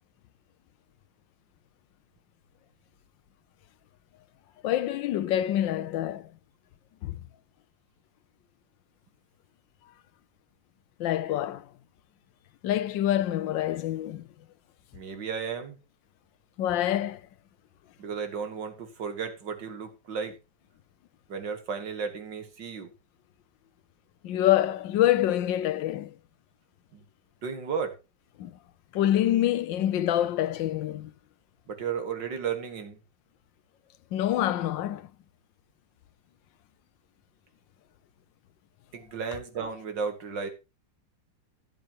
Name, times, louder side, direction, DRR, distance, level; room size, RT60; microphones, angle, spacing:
voice 1, 4.6-6.3 7.0-7.2 11.0-11.6 12.6-14.2 16.6-17.2 24.2-26.1 28.4-28.5 28.9-31.1 34.1-35.1, left 12 dB, 85° left, 1.4 m, -26 dB
voice 2, 14.9-15.8 18.0-20.3 21.3-22.9 26.9-27.0 27.4-28.0 31.7-33.0 38.9-40.5, right 6 dB, 75° right, 2.4 m, -34 dB
16.0 x 7.8 x 3.0 m
omnidirectional pair, 2.0 m